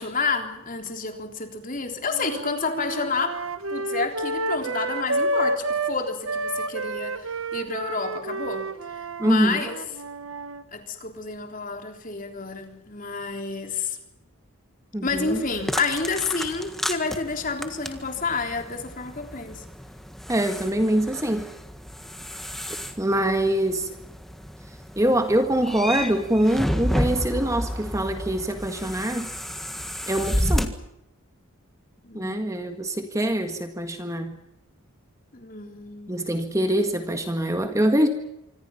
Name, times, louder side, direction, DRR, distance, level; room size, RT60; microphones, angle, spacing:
voice 1, 0.0-3.4 3.7-8.7 9.2-9.8 10.7-14.0 15.0-19.6 32.0-32.7 35.3-36.3, left 4 dB, 35° left, 5 dB, 3.5 m, -30 dB
sound 1, 2.1-5.9 6.2-10.6, right 2 dB, 70° right, 1.4 m, -30 dB
voice 2, 9.2-9.6 14.9-15.4 20.3-21.4 23.0-23.9 25.0-29.3 30.1-30.7 32.1-34.4 36.1-38.1, right 1 dB, 15° right, 7 dB, 1.7 m, -24 dB
sound 2, 15.1-30.7, equal, ahead, 1.7 m, -31 dB
26.0 x 25.5 x 5.8 m, 0.84 s
head